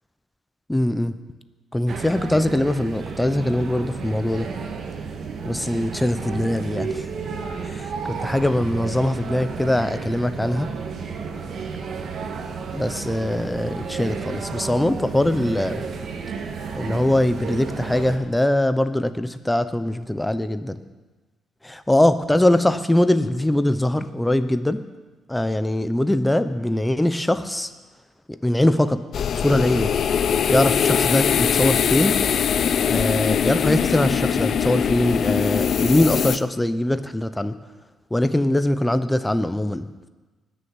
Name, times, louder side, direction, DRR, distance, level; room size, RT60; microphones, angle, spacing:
voice 1, 0.7-1.1 1.7-4.5 5.4-7.1 7.6-10.7 12.7-15.9 16.8-20.8 21.6-24.8 25.3-27.7 28.3-29.0 29.4-29.9 30.5-32.2 32.9-37.6 38.1-39.9, left 1 dB, 10° left, 11 dB, 0.8 m, -22 dB
sound 1, 1.9-18.2, right 5 dB, 60° right, 1.6 m, -32 dB
sound 2, 29.1-36.4, left 7 dB, 60° left, 0.5 m, -21 dB
19.0 x 6.9 x 7.2 m, 1.2 s
cardioid pair, 90°, 0 cm